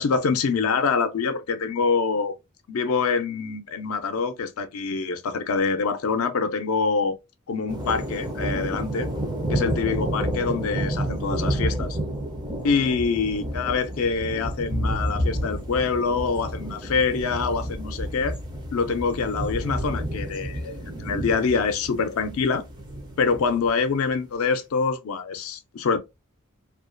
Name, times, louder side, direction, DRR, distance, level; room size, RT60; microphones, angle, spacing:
voice 1, 0.0-2.3 2.7-7.2 7.5-9.1 9.5-12.0 12.6-18.4 18.7-22.6 23.2-26.0, left 5 dB, 80° left, 0.4 m, -25 dB
sound 1, 7.7-23.8, right 1 dB, 20° right, 0.5 m, -30 dB
2.3 x 2.2 x 2.5 m
head